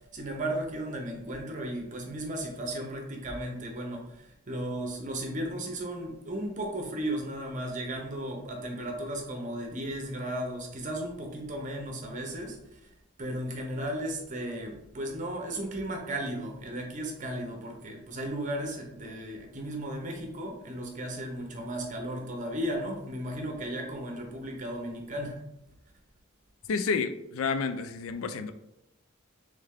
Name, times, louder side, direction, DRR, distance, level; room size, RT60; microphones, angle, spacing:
voice 1, 0.1-12.9 13.2-25.4, right 1 dB, 35° right, 1 dB, 0.8 m, -35 dB
voice 2, 26.7-28.5, left 5 dB, 75° left, 10 dB, 0.4 m, -30 dB
3.4 x 3.3 x 3.6 m, 0.86 s
head